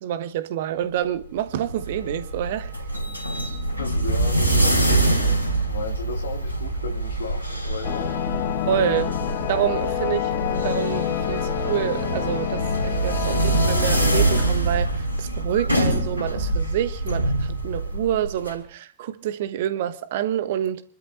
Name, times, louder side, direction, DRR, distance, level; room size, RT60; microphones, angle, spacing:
voice 1, 0.0-2.8 8.7-9.1 9.5-20.8, right 11 dB, 55° right, 1.1 m, -27 dB
sound 1, 1.5-18.5, right 2 dB, 85° right, 4.4 m, -25 dB
voice 2, 3.8-4.8 5.2-5.4 5.7-8.1, left 4 dB, 65° left, 2.5 m, -35 dB
sound 2, 7.8-14.5, left 13 dB, 45° left, 0.9 m, -28 dB
29.5 x 12.5 x 2.7 m
figure-of-eight pair, 90°, 0 cm